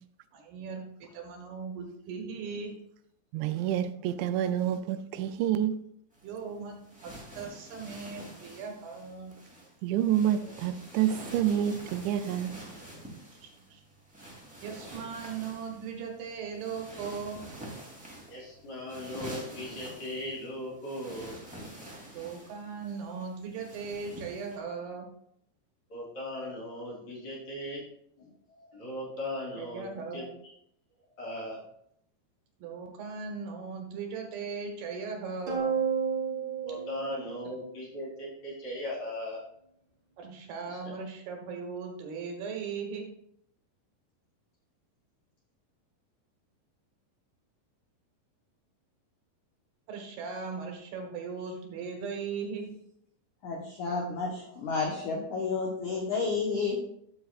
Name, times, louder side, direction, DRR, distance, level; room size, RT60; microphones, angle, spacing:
voice 1, 0.3-2.7 6.2-9.3 13.4-13.8 14.6-17.4 22.1-25.1 29.6-30.3 32.6-35.7 40.2-43.1 49.9-52.7, right 5 dB, 70° right, 3.0 m, -38 dB
voice 2, 3.3-5.8 9.8-12.6, right 10 dB, 85° right, 2.8 m, -28 dB
sound 1, 6.1-24.6, right 1 dB, 5° right, 1.1 m, -47 dB
voice 3, 18.3-21.4 25.9-27.8 28.2-30.2 31.2-31.6 36.6-39.4 40.7-40.9, left 1 dB, 40° left, 4.5 m, -38 dB
sound 2, 35.5-38.1, right 7 dB, 50° right, 1.6 m, -31 dB
voice 4, 53.4-56.8, left 4 dB, 80° left, 1.7 m, -31 dB
13.5 x 7.0 x 2.4 m
omnidirectional pair, 5.1 m